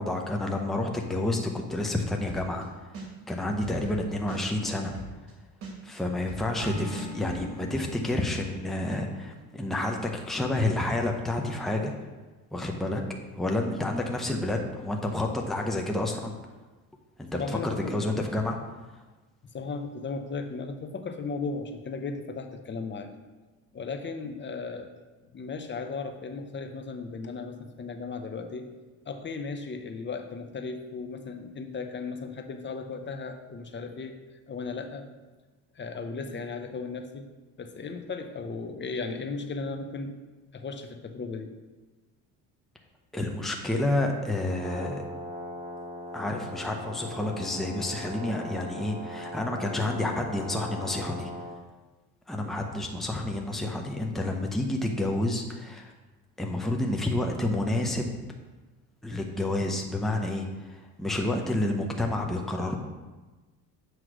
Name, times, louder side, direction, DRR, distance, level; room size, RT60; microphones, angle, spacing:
voice 1, 0.0-2.7 3.3-4.9 5.8-11.9 12.5-13.0 13.4-16.3 17.2-17.3 17.6-18.6 43.1-45.0 46.1-51.3 52.3-55.9 56.4-58.1 59.0-62.8, left 1 dB, ahead, 1 dB, 0.8 m, -29 dB
sound 1, 2.3-2.6 2.9-5.3 5.6-7.4, right 2 dB, 70° right, 2.0 m, -40 dB
Acoustic guitar / Strum, 6.6-10.8, left 1 dB, 55° right, 2.2 m, -42 dB
voice 2, 17.3-18.0 19.5-23.1 23.7-24.9 25.3-28.7 29.1-34.1 34.5-35.1 35.7-37.3 37.6-40.1 40.5-41.5, left 4 dB, 30° left, 6 dB, 0.8 m, -36 dB
Brass instrument, 44.5-51.6, equal, 25° right, 2.4 m, -39 dB
8.0 x 3.2 x 6.1 m, 1.2 s
cardioid pair, 95°, 36 cm